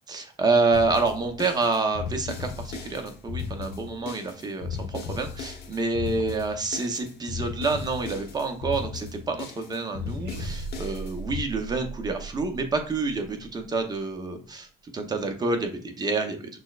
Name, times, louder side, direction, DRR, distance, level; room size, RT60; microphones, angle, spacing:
voice 1, 0.1-16.6, right 3 dB, 25° right, 5 dB, 0.7 m, -28 dB
sound 1, 0.7-11.4, left 6 dB, 70° left, 1.0 m, -36 dB
sound 2, 10.2-14.3, right 6 dB, 75° right, 0.7 m, -39 dB
6.2 x 2.1 x 2.4 m, 0.42 s
cardioid pair, 110°, 17 cm